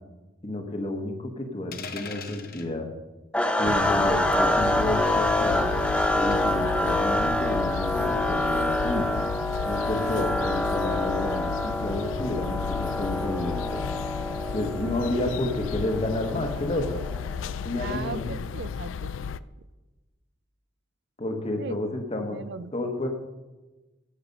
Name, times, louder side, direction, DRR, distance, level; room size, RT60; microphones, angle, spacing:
voice 1, 0.4-2.9 3.6-5.7 6.1-9.2 9.6-13.8 14.5-17.0 17.6-18.3 21.2-22.4 22.7-23.1, left 1 dB, 35° left, 4 dB, 1.3 m, -30 dB
sound 1, 1.7-2.7 4.3-4.6 6.3-6.6, left 6 dB, 50° left, 1.0 m, -40 dB
sound 2, 3.3-17.4, left 1 dB, 5° left, 0.8 m, -27 dB
sound 3, 3.6-19.4, left 7 dB, 90° left, 0.4 m, -34 dB
voice 2, 17.8-19.3 21.6-21.7 22.3-22.7, right 5 dB, 60° right, 15 dB, 0.4 m, -38 dB
14.0 x 6.0 x 5.4 m, 1.1 s
head